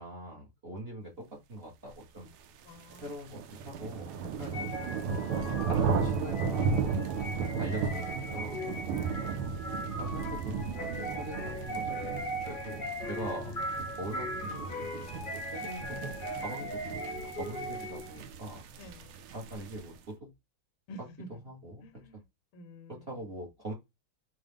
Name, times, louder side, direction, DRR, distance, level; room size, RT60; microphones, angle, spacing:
voice 1, 0.0-2.3 3.0-5.0 5.5-7.1 7.6-8.6 8.9-9.0 10.0-12.1 12.5-17.0 17.4-18.6 19.3-20.3 21.3-22.0 22.9-23.7, right 1 dB, 35° right, 1.0 m, -43 dB
sound 1, 2.4-20.0, right 5 dB, 85° right, 1.6 m, -35 dB
voice 2, 2.6-3.1 7.7-8.2 18.8-19.2 20.9-21.4 21.8-22.2 22.5-23.1, equal, 85° left, 1.6 m, -50 dB
sound 2, 4.5-18.2, equal, 50° left, 0.6 m, -39 dB
4.0 x 3.8 x 3.5 m
omnidirectional pair, 2.4 m